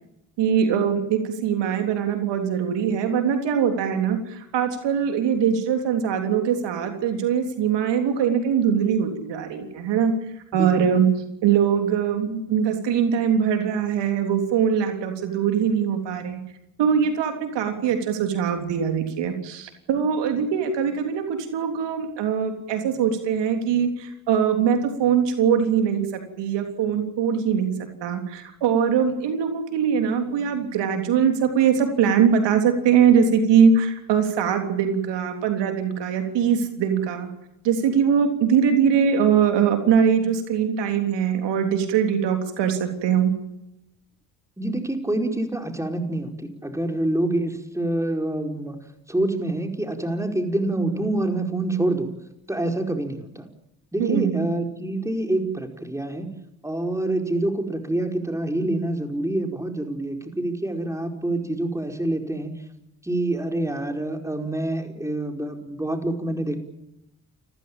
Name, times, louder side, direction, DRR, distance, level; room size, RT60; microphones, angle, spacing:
voice 1, 0.4-10.1 10.5-11.1 11.4-16.4 16.8-27.7 28.0-37.3 37.6-43.3 54.0-54.5, right 7 dB, 70° right, 6 dB, 3.5 m, -22 dB
voice 2, 44.6-48.8 49.1-52.1 52.5-53.5 53.9-56.3 56.6-62.5 63.0-66.6, right 1 dB, 5° right, 4 dB, 5.1 m, -26 dB
29.5 x 15.5 x 9.0 m, 0.85 s
hypercardioid pair, 50°, 44 cm